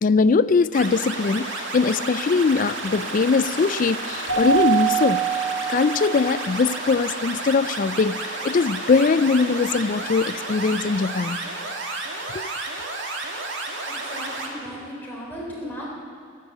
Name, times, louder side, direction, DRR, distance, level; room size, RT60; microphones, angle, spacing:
voice 1, 0.0-5.2 5.7-11.4 12.3-12.5, left 4 dB, 40° left, 16 dB, 0.4 m, -21 dB
sound 1, 0.7-14.5, right 2 dB, 60° right, 2.1 m, -31 dB
Keyboard (musical), 4.3-6.6, right 8 dB, 85° right, 2.8 m, -24 dB
voice 2, 13.9-15.9, equal, 10° left, -5 dB, 3.7 m, -36 dB
15.0 x 12.0 x 8.1 m, 2.2 s
head